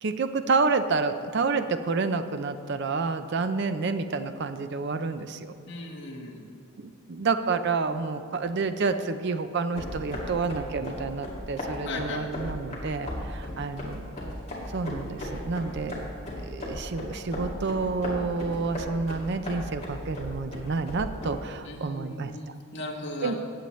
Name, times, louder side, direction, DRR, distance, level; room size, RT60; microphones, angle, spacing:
voice 1, 0.0-5.5 6.8-14.1 14.7-16.0 16.4-22.3 23.2-23.3, right 4 dB, 50° right, 9 dB, 0.5 m, -29 dB
voice 2, 5.7-6.4 11.8-12.2 21.6-23.3, left 2 dB, 55° left, -1 dB, 1.4 m, -37 dB
sound 1, 9.7-21.3, left 1 dB, 30° left, 2.2 m, -36 dB
15.5 x 8.4 x 3.1 m, 2.5 s
head